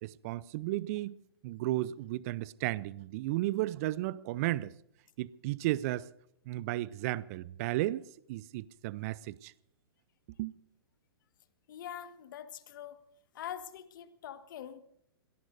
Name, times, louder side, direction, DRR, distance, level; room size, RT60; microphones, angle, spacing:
voice 1, 0.0-1.2 1.4-4.7 5.2-6.1 6.5-9.5 10.4-10.5, right 16 dB, 40° right, 0.5 m, -34 dB
voice 2, 11.7-13.0 13.3-14.8, left 10 dB, 55° left, 1.6 m, -44 dB
26.5 x 18.0 x 2.7 m
figure-of-eight pair, 120°, 13 cm